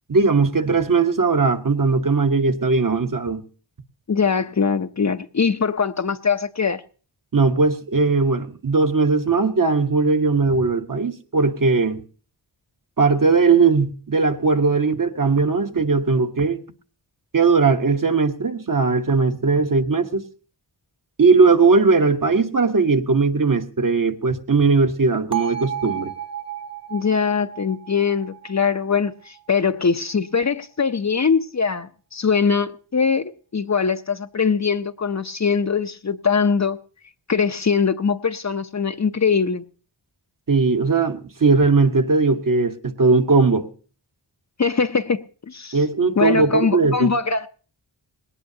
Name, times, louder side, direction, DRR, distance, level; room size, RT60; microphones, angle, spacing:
voice 1, 0.1-3.4 7.3-12.0 13.0-16.6 17.3-20.3 21.2-26.1 40.5-43.7 45.7-47.1, right 4 dB, 45° right, 1.2 m, -19 dB
voice 2, 4.1-6.8 26.9-36.8 37.3-39.6 44.6-45.8 46.2-47.5, left 5 dB, 40° left, 0.6 m, -22 dB
Bell, 25.3-29.4, right 9 dB, 10° right, 0.9 m, -32 dB
19.0 x 18.0 x 2.8 m
wide cardioid pair, 60°, 45 cm